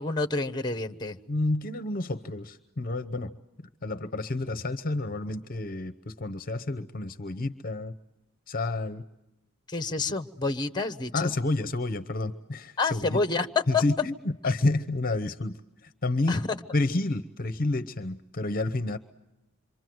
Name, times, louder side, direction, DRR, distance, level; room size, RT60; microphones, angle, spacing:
voice 1, 0.0-1.2 9.7-11.3 12.8-13.5 13.7-13.8 16.3-16.5, left 3 dB, 20° left, 9 dB, 1.1 m, -28 dB
voice 2, 1.3-3.3 3.8-7.9 8.5-9.0 11.1-13.2 13.7-16.4 16.7-19.0, left 2 dB, 45° left, 12 dB, 0.9 m, -29 dB
27.5 x 25.0 x 7.8 m, 0.95 s
head